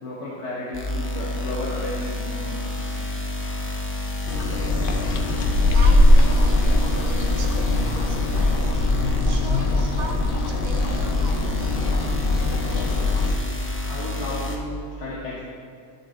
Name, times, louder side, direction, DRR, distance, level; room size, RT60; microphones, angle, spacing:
voice 1, 0.0-2.8 13.9-15.4, left 1 dB, 80° left, -6 dB, 1.4 m, -33 dB
sound 1, 0.7-14.6, left 2 dB, 15° left, 0.6 m, -30 dB
sound 2, 4.3-13.3, left 2 dB, 55° left, 0.8 m, -21 dB
voice 2, 5.7-8.7 9.2-11.8, right 3 dB, 45° right, 2 dB, 0.9 m, -38 dB
9.8 x 5.2 x 4.3 m, 2.4 s
omnidirectional pair, 1.2 m